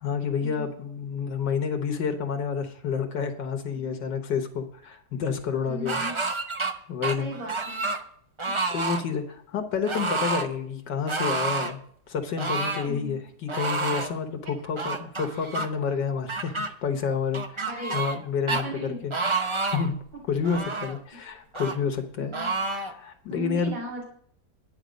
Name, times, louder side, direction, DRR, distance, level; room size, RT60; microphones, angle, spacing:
voice 1, 0.0-6.3 6.9-7.3 8.7-11.8 12.1-18.7 19.0-19.1 19.7-20.0 20.3-22.3 22.7-23.7, left 6 dB, 85° left, 4 dB, 1.8 m, -29 dB
voice 2, 5.6-6.2 7.2-7.9 8.4-8.5 12.8-13.2 14.4-14.5 15.8-15.9 17.6-18.1 18.5-19.1 21.2-21.3 22.2-22.5 23.3-24.0, right 1 dB, 75° right, -3 dB, 3.1 m, -37 dB
sound 1, 5.9-6.7 7.0-8.0 8.4-9.0 9.9-10.5 11.1-11.7 12.4-12.9 13.5-14.1 14.8-15.7 16.3-16.7 17.3-18.2 18.5-18.6 19.1-19.9 20.4-21.0 21.5-21.8 22.3-22.9, right 3 dB, 40° right, 0.4 m, -29 dB
11.5 x 9.0 x 5.2 m, 0.63 s
omnidirectional pair, 1.9 m